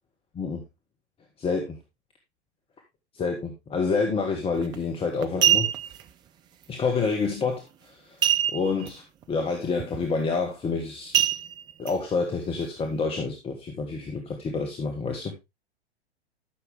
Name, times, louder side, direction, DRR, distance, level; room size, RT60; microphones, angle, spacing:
voice 1, 1.4-1.7 3.1-5.7 6.7-8.2 8.5-9.0 9.3-11.1 11.8-15.3, left 4 dB, 15° left, 3 dB, 1.6 m, -28 dB
sound 1, 4.6-4.8 5.2-6.0 8.2-8.9 9.2-9.3 9.8-10.1 11.1-11.9 12.5-12.6, right 11 dB, 15° right, 0.4 m, -23 dB
13.0 x 6.7 x 3.5 m, 0.23 s
figure-of-eight pair, 105°, 33 cm